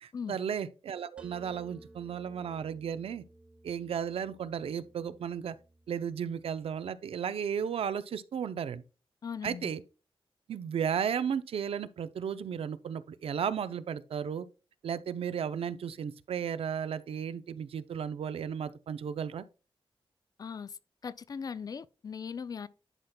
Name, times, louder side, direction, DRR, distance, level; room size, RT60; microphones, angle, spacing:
voice 1, 0.0-3.2 3.6-5.6 5.9-8.8 9.4-9.8 10.5-14.5 14.8-19.4, right 8 dB, 75° right, 0.5 m, -34 dB
sound 1, 1.2-7.0, right 2 dB, 10° right, 0.9 m, -57 dB
voice 2, 9.2-9.7 20.4-20.8 21.0-22.7, left 6 dB, 40° left, 0.3 m, -39 dB
11.0 x 5.8 x 2.3 m
wide cardioid pair, 160°, 10 cm